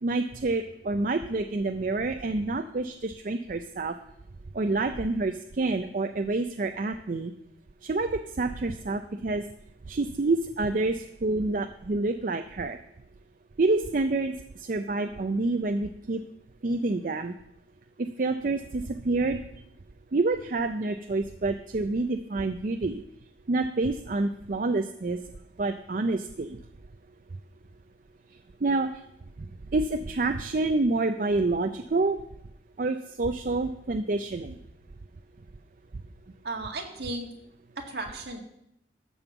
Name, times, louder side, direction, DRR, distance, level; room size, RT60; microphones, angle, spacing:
voice 1, 0.0-4.0 4.5-7.3 7.8-9.5 9.9-12.8 13.6-16.2 16.6-17.3 18.0-19.4 20.1-23.0 23.5-25.2 25.6-26.6 28.6-29.0 29.4-29.5 29.7-32.2 32.8-34.6 35.9-36.0, right 2 dB, 50° right, 7 dB, 0.5 m, -28 dB
voice 2, 36.4-37.3 37.8-38.4, right 2 dB, 70° right, 2 dB, 2.0 m, -35 dB
13.5 x 5.3 x 6.9 m, 0.76 s
head